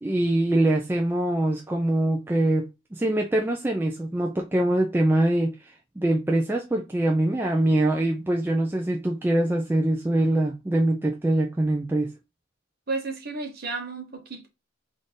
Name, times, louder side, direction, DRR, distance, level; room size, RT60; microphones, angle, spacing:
voice 1, 0.0-12.1, right 1 dB, 10° right, 0.4 m, -24 dB
voice 2, 12.9-14.5, right 3 dB, 45° right, 1.1 m, -32 dB
3.6 x 2.6 x 3.7 m
head